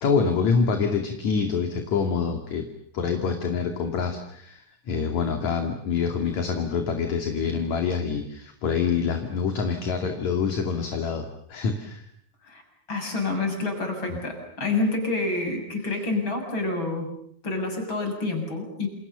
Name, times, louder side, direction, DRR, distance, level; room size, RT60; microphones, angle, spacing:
voice 1, 0.0-2.7 2.9-12.1, left 5 dB, 50° left, 5 dB, 3.4 m, -26 dB
voice 2, 12.9-17.1 17.4-18.9, left 3 dB, 30° left, 5 dB, 7.6 m, -28 dB
29.5 x 28.5 x 6.9 m, 0.66 s
omnidirectional pair, 4.4 m